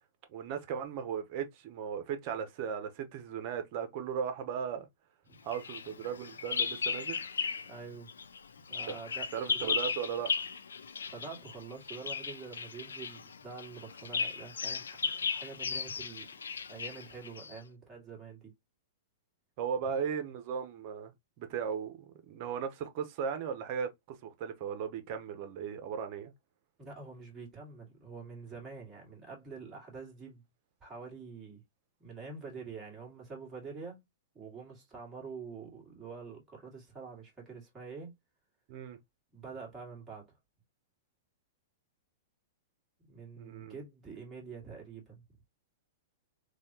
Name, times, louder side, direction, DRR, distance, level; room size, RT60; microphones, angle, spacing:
voice 1, 0.3-4.9 5.4-7.2 8.8-9.0 9.3-10.3 19.6-21.1 21.4-23.9 24.2-26.3 38.7-39.0 43.4-43.8, right 7 dB, 45° right, 0.9 m, -37 dB
Bird vocalization bird call bird song, 5.5-7.8 8.1-17.6, left 5 dB, 90° left, 0.4 m, -36 dB
voice 2, 7.7-8.1 8.7-9.8 11.1-16.3 16.7-18.5 19.9-20.0 26.8-30.4 30.8-31.6 32.0-34.0 34.3-38.1 39.3-40.3 43.0-45.3, right 5 dB, 15° right, 1.9 m, -46 dB
3.3 x 2.4 x 2.8 m
hypercardioid pair, 125°, 0 cm